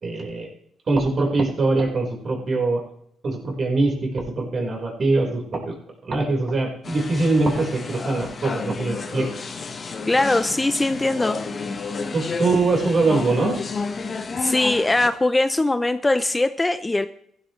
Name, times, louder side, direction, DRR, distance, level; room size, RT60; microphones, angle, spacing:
voice 1, 0.0-0.5 0.9-2.8 3.2-5.7 6.0-9.3 12.1-13.6, right 3 dB, 45° right, 0 dB, 4.6 m, -22 dB
sound 1, 6.8-15.1, left 4 dB, 40° left, 1.5 m, -31 dB
voice 2, 10.1-11.4 14.4-17.1, left 2 dB, 15° left, 12 dB, 0.6 m, -21 dB
15.0 x 12.5 x 3.3 m, 0.70 s
cardioid pair, 90°, 0 cm